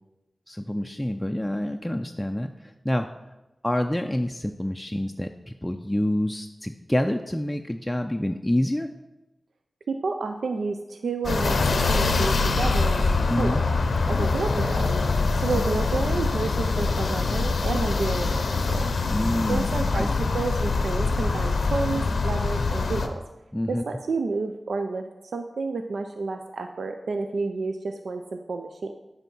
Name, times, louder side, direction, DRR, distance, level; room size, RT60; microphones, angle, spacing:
voice 1, 0.5-2.5 2.8-3.1 3.6-5.3 5.6-8.9 13.3-13.6 14.2-14.3 15.5-15.6 19.1-20.1 23.5-23.8, left 1 dB, 15° left, 4 dB, 0.4 m, -27 dB
voice 2, 9.9-13.6 14.1-14.9 15.4-18.8 19.5-23.2 23.7-25.0 25.3-28.9, right 3 dB, 85° right, 6 dB, 0.4 m, -30 dB
sound 1, 11.2-23.1, left 3 dB, 80° left, 0.6 m, -24 dB
9.1 x 3.5 x 5.4 m, 1.0 s
cardioid pair, 40°, 0 cm